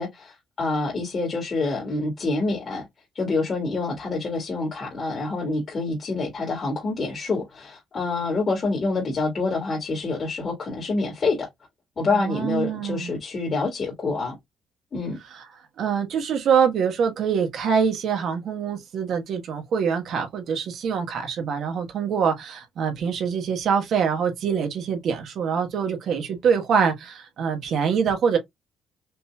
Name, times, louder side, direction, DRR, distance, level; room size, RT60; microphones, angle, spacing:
voice 1, 0.0-2.9 3.2-11.5 12.0-14.4 14.9-15.2, left 3 dB, 45° left, 1.9 m, -27 dB
voice 2, 12.1-13.1 15.3-15.4 15.8-28.4, right 6 dB, 70° right, 1.3 m, -24 dB
5.2 x 2.8 x 2.3 m
cardioid pair, 90°, 0 cm